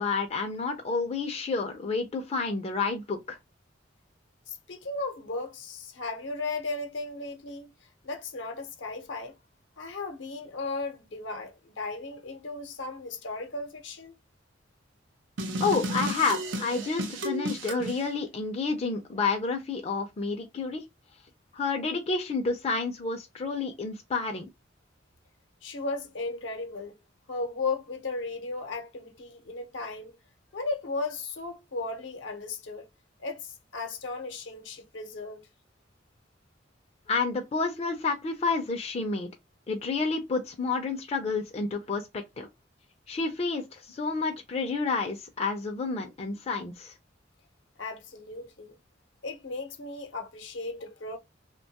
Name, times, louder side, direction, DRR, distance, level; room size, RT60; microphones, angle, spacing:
voice 1, 0.0-3.4 15.6-20.8 21.5-24.5 37.1-39.3 39.7-42.5 43.1-46.9, left 4 dB, 35° left, 0.4 m, -30 dB
voice 2, 4.5-9.4 9.8-14.1 25.6-27.0 27.3-30.2 30.5-32.9 33.2-35.5 47.8-48.8 49.2-51.2, left 3 dB, 80° left, 0.7 m, -36 dB
sound 1, 15.4-18.0, right 1 dB, 85° right, 0.6 m, -33 dB
2.8 x 2.2 x 2.7 m
head